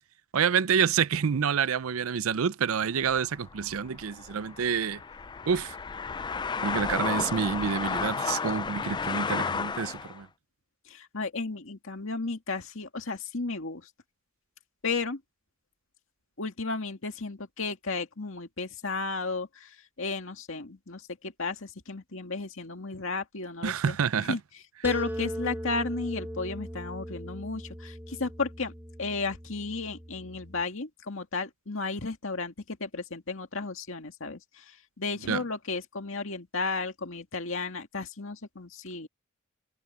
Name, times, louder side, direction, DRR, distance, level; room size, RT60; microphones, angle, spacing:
voice 1, 0.3-5.0 5.5-5.8 6.6-10.3 23.6-24.4 35.3-35.4, right 7 dB, 80° right, 0.5 m, -28 dB
sound 1, 3.0-10.2, left 5 dB, 20° left, 0.3 m, -33 dB
voice 2, 10.9-13.9 14.8-15.2 16.4-24.0 24.3-24.4 24.8-28.7 29.0-39.1, left 3 dB, 65° left, 2.2 m, -34 dB
sound 2, 24.8-30.6, equal, 10° right, 1.4 m, -39 dB
head